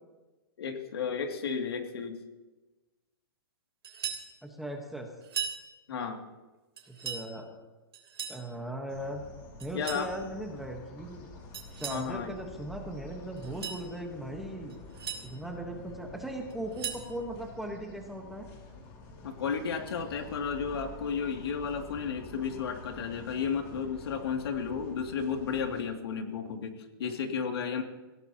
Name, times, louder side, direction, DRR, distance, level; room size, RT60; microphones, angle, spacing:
voice 1, 0.6-2.2 5.9-6.2 9.7-10.1 11.9-12.3 19.2-27.8, left 6 dB, 75° left, 4 dB, 2.5 m, -33 dB
sound 1, 3.8-4.3 5.2-5.6 6.8-7.3 7.9-8.4 9.6-10.1 11.5-12.1 13.4-13.8 14.7-15.2 16.5-17.1, right 8 dB, 85° right, 3.4 m, -37 dB
voice 2, 4.4-5.1 7.0-7.5 8.3-9.2 9.6-11.3 11.8-14.7 15.2-18.5, right 1 dB, ahead, 2 dB, 1.2 m, -38 dB
sound 2, 8.9-25.8, left 1 dB, 30° left, 2.7 m, -48 dB
26.0 x 16.5 x 2.9 m, 1.2 s
hypercardioid pair, 170°, 13 cm